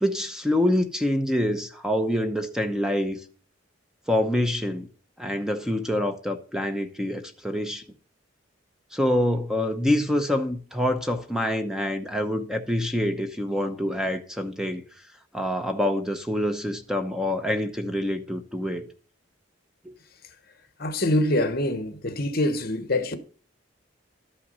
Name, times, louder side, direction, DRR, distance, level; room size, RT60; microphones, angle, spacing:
voice 1, 0.0-3.2 4.1-4.9 5.2-7.8 8.9-14.8 15.3-18.8 19.8-19.9, left 1 dB, 5° right, 0.8 m, -26 dB
voice 2, 20.8-23.2, left 1 dB, 55° left, 1.1 m, -25 dB
12.5 x 5.8 x 5.5 m
head